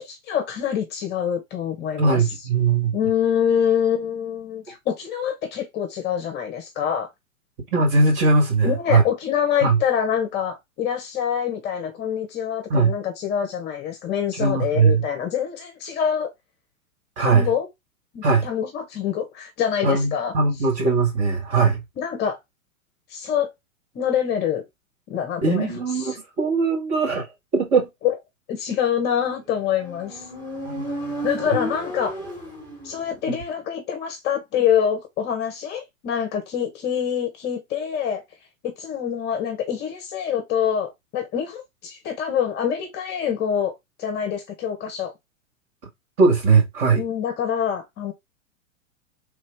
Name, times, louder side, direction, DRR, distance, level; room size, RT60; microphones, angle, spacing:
voice 1, 0.0-2.3 2.9-7.1 8.6-16.3 17.2-17.7 18.1-20.3 22.0-22.4 23.1-23.5 23.9-24.6 25.1-25.7 26.0-26.2 28.5-30.3 31.2-32.2 32.8-38.2 38.8-45.1 46.9-48.1, left 8 dB, 25° left, 0.9 m, -25 dB
voice 2, 2.0-3.0 7.7-9.0 9.6-9.8 12.7-12.9 14.3-15.0 17.2-17.5 18.2-18.5 19.8-21.8 25.4-27.3 27.5-27.9 30.6-30.9 33.3-33.4 46.2-47.0, right 4 dB, 35° right, 1.8 m, -20 dB
Motorcycle, 29.6-33.3, equal, 10° right, 1.6 m, -33 dB
3.4 x 2.7 x 3.4 m
figure-of-eight pair, 105°, 41 cm